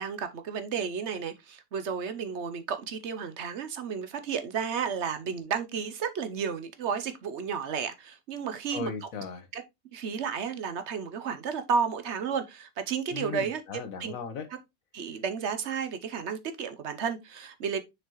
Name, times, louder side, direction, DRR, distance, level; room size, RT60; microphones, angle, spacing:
voice 1, 0.0-9.1 9.5-9.6 9.9-13.6 14.0-14.1 14.9-17.8, right 6 dB, 60° right, 1.0 m, -32 dB
voice 2, 8.7-9.5 13.1-14.5, left 6 dB, 85° left, 1.5 m, -37 dB
6.5 x 4.8 x 3.0 m
omnidirectional pair, 1.4 m